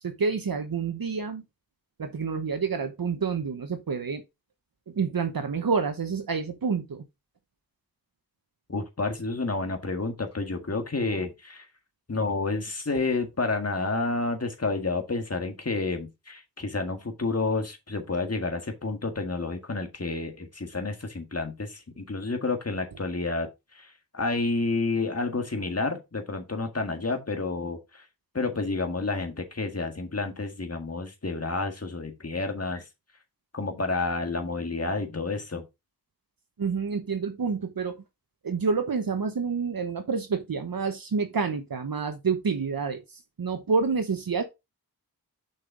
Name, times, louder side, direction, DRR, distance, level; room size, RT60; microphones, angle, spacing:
voice 1, 0.0-1.4 2.0-4.2 4.9-7.0 36.6-38.0 38.4-44.4, right 5 dB, 65° right, 1.0 m, -28 dB
voice 2, 8.7-11.7 12.1-28.1 28.3-32.8 33.5-35.7, left 3 dB, 40° left, 1.8 m, -30 dB
6.5 x 5.7 x 3.8 m
wide cardioid pair, 75°, 38 cm